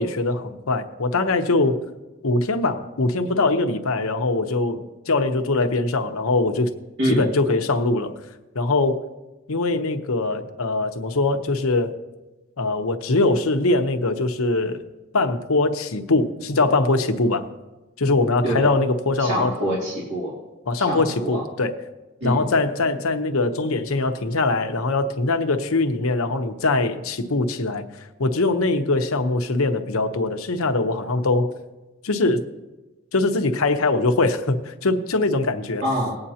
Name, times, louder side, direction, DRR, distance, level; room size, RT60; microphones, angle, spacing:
voice 1, 0.0-1.8 2.2-6.7 7.0-8.1 8.5-9.0 9.5-12.0 12.6-14.8 15.1-17.5 18.0-19.5 20.7-21.8 22.2-27.8 28.2-31.5 32.0-32.4 33.1-35.8, left 2 dB, 80° left, 7 dB, 0.9 m, -22 dB
voice 2, 19.2-20.3 20.8-21.4 22.2-22.4 35.8-36.2, equal, 60° right, -6 dB, 2.4 m, -25 dB
20.0 x 8.8 x 2.8 m, 1.1 s
head